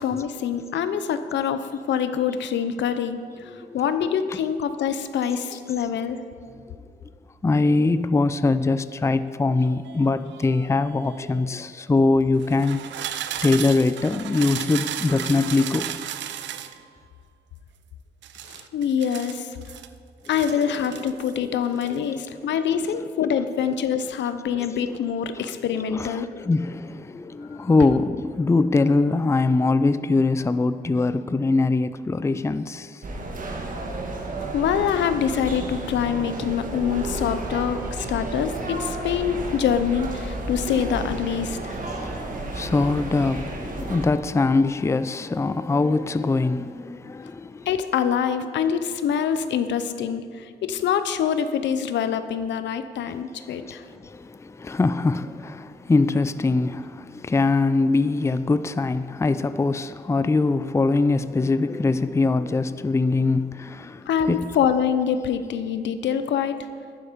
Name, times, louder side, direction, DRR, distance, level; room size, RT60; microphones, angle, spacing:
voice 1, 0.0-6.2 18.5-19.6 20.3-26.3 34.5-41.8 47.7-53.8 64.1-66.6, left 8 dB, 85° left, 0.7 m, -25 dB
voice 2, 7.4-12.8 13.4-16.0 21.9-22.0 24.6-25.0 25.4-25.5 25.9-32.9 41.9-47.7 53.1-53.2 53.5-64.4, left 3 dB, 15° left, 0.4 m, -23 dB
sound 1, 9.6-11.5 12.3-16.8 18.2-19.9 20.2-21.4 21.7-22.0, right 11 dB, 90° right, 0.5 m, -35 dB
sound 2, 33.0-44.1, right 2 dB, 50° right, 1.6 m, -32 dB
11.0 x 10.0 x 5.1 m
cardioid pair, 80°, 18 cm